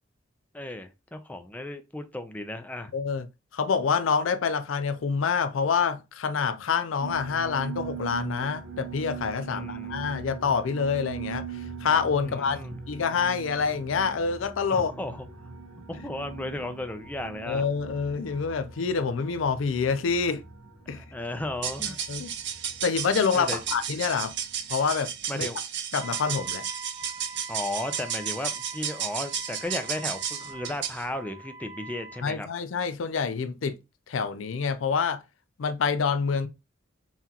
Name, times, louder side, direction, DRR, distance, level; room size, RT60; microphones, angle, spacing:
voice 1, 0.5-2.9 9.5-10.1 12.2-12.8 14.7-15.3 15.9-17.6 20.9-22.0 23.3-23.6 25.3-25.6 27.5-32.5, left 1 dB, 10° left, 0.4 m, -35 dB
voice 2, 2.9-3.3 3.5-12.6 12.9-14.9 17.5-20.4 20.9-21.0 22.1-22.3 22.8-24.4 24.7-25.5 25.9-26.6 32.2-33.8 34.1-35.2 35.6-36.5, left 5 dB, 75° left, 0.4 m, -27 dB
sound 1, 7.0-25.2, right 6 dB, 80° right, 1.3 m, -42 dB
sound 2, 21.5-31.1, right 8 dB, 60° right, 0.7 m, -33 dB
Wind instrument woodwind instrument, 26.0-32.3, right 4 dB, 15° right, 1.1 m, -43 dB
5.6 x 2.4 x 2.8 m
head